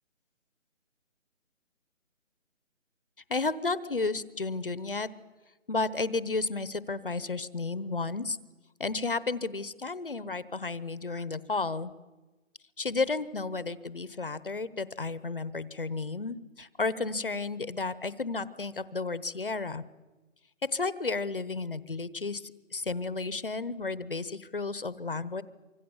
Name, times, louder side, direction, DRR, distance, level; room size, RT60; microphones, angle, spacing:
voice 1, 3.3-5.1 5.7-8.4 8.8-11.9 12.8-19.8 20.7-25.4, left 3 dB, 45° left, 16 dB, 1.0 m, -32 dB
25.0 x 25.0 x 7.2 m, 1.2 s
hypercardioid pair, 180°, 39 cm